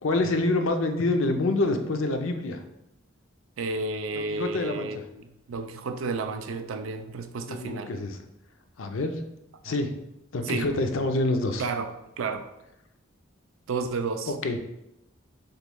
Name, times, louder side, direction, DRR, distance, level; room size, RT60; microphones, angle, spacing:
voice 1, 0.0-2.6 4.1-4.9 7.5-8.2 8.8-9.2 9.6-9.9 10.3-11.6 14.3-14.6, left 2 dB, 75° left, 6 dB, 0.6 m, -26 dB
voice 2, 3.6-7.9 9.7-9.8 10.4-10.7 11.6-12.5 13.7-14.3, right 4 dB, 80° right, 8 dB, 0.4 m, -32 dB
6.4 x 3.1 x 2.2 m, 0.87 s
head